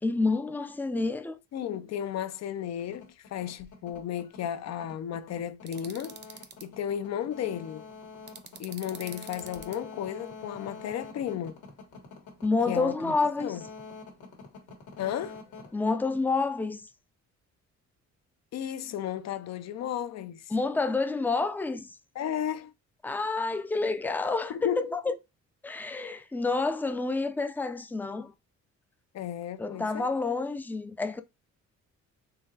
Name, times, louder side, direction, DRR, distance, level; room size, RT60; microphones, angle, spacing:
voice 1, 0.0-1.4 12.4-13.6 15.7-16.9 20.5-21.9 23.0-25.1 25.6-28.3 29.6-31.2, left 3 dB, 5° left, 0.4 m, -29 dB
voice 2, 1.5-6.2 6.6-7.9 8.6-11.6 12.7-13.1 13.4-13.6 15.0-15.4 18.5-20.5 22.1-22.7 24.5-24.9 29.1-30.1, left 10 dB, 60° left, 0.5 m, -34 dB
sound 1, 2.8-16.6, left 4 dB, 85° left, 1.8 m, -47 dB
sound 2, 5.7-6.6 8.3-9.8, right 6 dB, 35° right, 0.7 m, -45 dB
3.9 x 3.1 x 2.8 m
cardioid pair, 90°, 30 cm